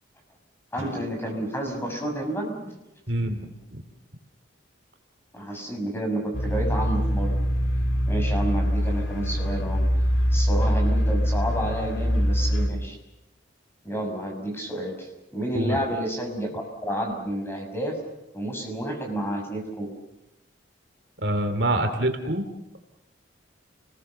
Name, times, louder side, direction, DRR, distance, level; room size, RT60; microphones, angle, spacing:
voice 1, 0.7-2.7 5.3-7.4 8.0-9.8 10.3-13.0 13.8-18.0 18.3-19.9, right 1 dB, 10° left, 2 dB, 6.2 m, -30 dB
sound 1, 0.8-4.1, left 1 dB, 15° right, 7.7 m, -47 dB
voice 2, 3.1-3.8 15.5-15.8 21.2-22.5, right 1 dB, 60° right, 7 dB, 2.8 m, -26 dB
sound 2, 6.3-12.7, equal, 75° left, 3.5 m, -23 dB
30.0 x 20.5 x 6.8 m, 0.90 s
head